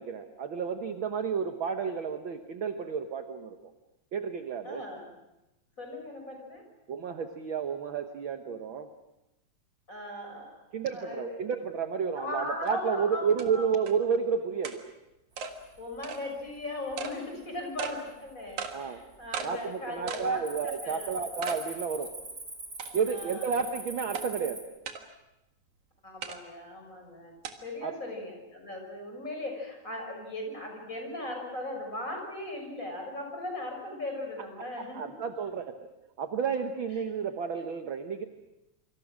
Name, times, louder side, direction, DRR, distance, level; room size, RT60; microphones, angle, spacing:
voice 1, 0.0-3.6 4.1-4.8 6.9-8.9 10.7-14.8 18.7-19.0 19.4-22.1 22.9-24.6 27.8-28.0 34.8-35.9 36.2-38.2, right 6 dB, 55° right, 7 dB, 1.6 m, -31 dB
voice 2, 4.6-5.1 5.8-6.6 9.9-11.4 12.1-13.7 15.8-21.1 23.1-23.6 26.0-27.3 27.6-35.1, left 1 dB, 25° left, 2 dB, 6.7 m, -38 dB
sound 1, 12.7-12.8 13.4-13.5 13.9-14.0 14.6-14.8 15.4-15.5 16.0-16.2 17.0-17.2 17.8-18.0 18.6-18.8 19.3-19.5 20.1-20.3 20.7-20.8 21.4-21.6 22.1-22.2 22.8-23.2 24.1-24.3 24.9-25.0 26.2-26.4 27.4-27.5, right 6 dB, 80° right, 3.2 m, -36 dB
Cricket, 15.6-16.1 16.5-16.9 17.5-17.6 18.3-18.9 19.1-19.4 19.7-24.6, right 2 dB, 30° right, 5.8 m, -42 dB
27.5 x 25.5 x 6.3 m, 0.95 s
omnidirectional pair, 3.3 m